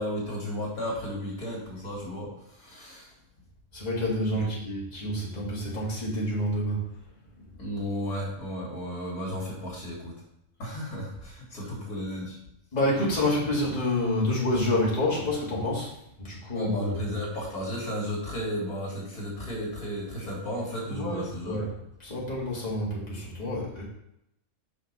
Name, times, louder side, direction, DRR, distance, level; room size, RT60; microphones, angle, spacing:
voice 1, 0.0-2.3 2.6-3.1 4.3-4.5 7.6-10.1 10.6-12.4 16.5-21.6, equal, 90° left, -3 dB, 2.8 m, -33 dB
voice 2, 3.7-6.9 11.6-11.7 12.7-16.9 20.9-23.8, left 1 dB, 30° left, -5 dB, 2.2 m, -28 dB
5.7 x 5.2 x 5.4 m, 0.80 s
omnidirectional pair, 1.5 m